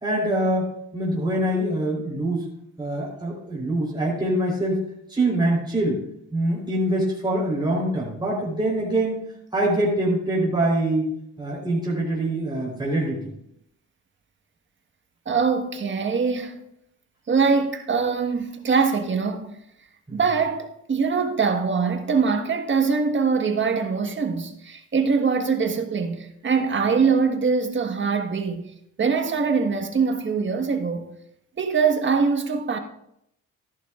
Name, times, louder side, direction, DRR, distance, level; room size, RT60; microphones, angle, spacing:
voice 1, 0.0-2.5 2.8-4.8 5.1-6.0 6.3-9.2 9.5-11.1 11.4-13.2 20.1-20.2, right 1 dB, 15° right, 4.1 m, -24 dB
voice 2, 15.3-16.6 17.3-19.5 20.1-28.6 29.0-31.1 31.6-32.8, right 5 dB, 40° right, 1.5 m, -23 dB
14.0 x 11.0 x 2.5 m
cardioid pair, 90°, 30 cm